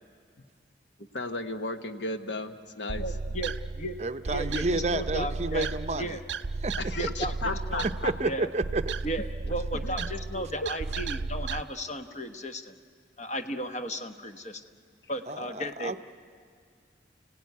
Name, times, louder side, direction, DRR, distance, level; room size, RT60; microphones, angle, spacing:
voice 1, 1.1-3.0 4.3-4.4 6.8-8.1 9.8-10.1 10.3-10.7, left 2 dB, 80° left, 8 dB, 1.2 m, -35 dB
sound 1, 2.9-11.6, right 3 dB, 85° right, 0.6 m, -34 dB
voice 2, 3.0-4.0 4.2-5.7 5.9-6.2 7.0-7.9 8.2-8.5 9.0-12.7 13.2-14.6 15.1-16.0, equal, 40° left, 7 dB, 1.1 m, -35 dB
voice 3, 4.0-6.2 6.6-7.1 8.0-8.9 15.3-16.0, right 3 dB, 40° right, 10 dB, 0.6 m, -30 dB
29.5 x 17.0 x 9.5 m, 2.1 s
head